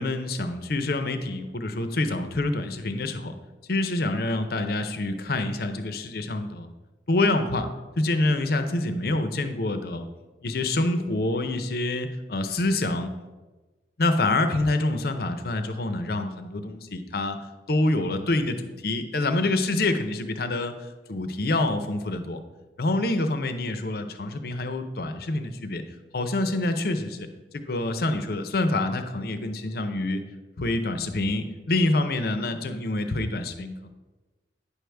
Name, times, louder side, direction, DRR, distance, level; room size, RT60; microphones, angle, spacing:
voice 1, 0.0-3.4 3.7-6.7 7.1-7.7 8.0-10.1 10.4-13.1 14.0-17.4 17.7-20.7 21.1-22.4 22.8-25.8 26.1-27.3 27.5-30.2 30.6-33.9, left 2 dB, 55° left, 8 dB, 0.7 m, -26 dB
9.8 x 6.3 x 3.4 m, 1.2 s
head